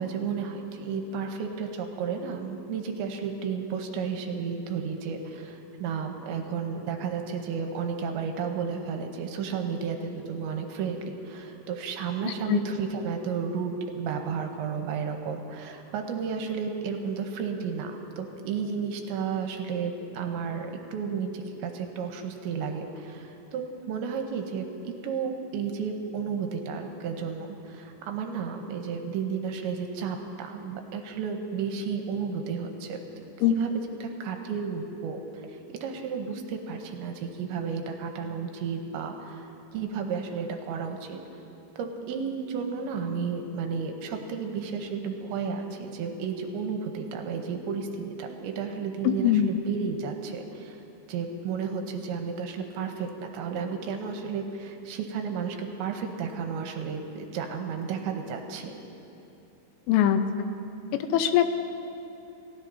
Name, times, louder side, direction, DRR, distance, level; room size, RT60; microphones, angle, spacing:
voice 1, 0.0-33.0 33.5-33.7 34.0-39.5 39.7-41.2 41.8-50.8 51.1-58.7, right 6 dB, 80° right, 4 dB, 3.0 m, -32 dB
voice 2, 12.2-12.6 33.4-33.5 49.0-49.5 59.9-60.2 60.9-61.5, left 11 dB, 85° left, 8 dB, 3.1 m, -22 dB
28.5 x 16.0 x 2.7 m, 2.9 s
omnidirectional pair, 5.5 m